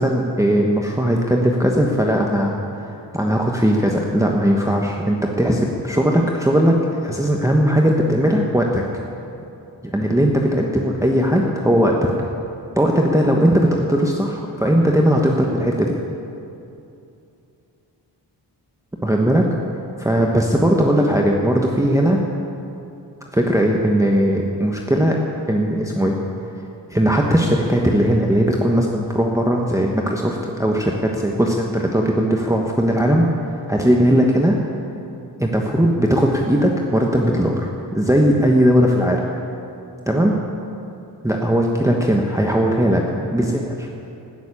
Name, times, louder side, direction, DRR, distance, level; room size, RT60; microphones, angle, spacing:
voice 1, 0.0-8.8 9.8-12.0 12.8-15.9 19.0-19.4 20.0-22.2 23.3-25.2 25.5-26.2 26.9-33.3 33.7-34.6 35.4-39.2 40.1-40.4 41.2-43.9, equal, 5° right, 0 dB, 1.2 m, -18 dB
17.0 x 7.2 x 9.9 m, 2.7 s
wide cardioid pair, 75°, 43 cm